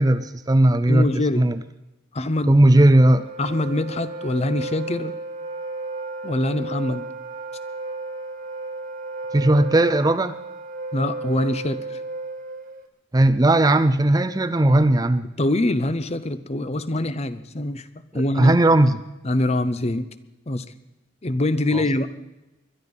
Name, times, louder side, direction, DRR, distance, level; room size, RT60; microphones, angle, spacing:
voice 1, 0.0-1.6 2.5-3.3 9.3-10.4 13.1-15.3 18.1-19.0 21.7-21.8, right 1 dB, 20° right, 12 dB, 0.5 m, -17 dB
voice 2, 0.9-1.4 2.1-2.5 3.4-5.1 6.2-7.1 10.9-12.0 14.6-14.8 15.4-17.9 18.1-18.5 19.2-20.1 20.5-20.7 21.2-22.1, left 1 dB, 30° left, 13 dB, 0.7 m, -24 dB
Wind instrument woodwind instrument, 2.9-12.9, right 3 dB, 45° right, 1.7 m, -33 dB
22.0 x 11.5 x 5.4 m, 1.0 s
head